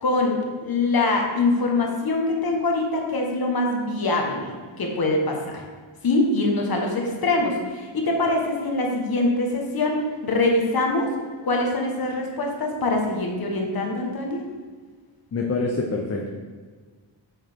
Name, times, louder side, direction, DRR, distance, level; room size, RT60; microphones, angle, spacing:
voice 1, 0.0-5.6 6.0-11.1 11.4-14.4, left 2 dB, 50° left, 1 dB, 1.2 m, -24 dB
voice 2, 15.3-16.3, left 3 dB, 35° left, 1 dB, 0.6 m, -25 dB
6.4 x 6.4 x 3.5 m, 1.5 s
wide cardioid pair, 160°, 46 cm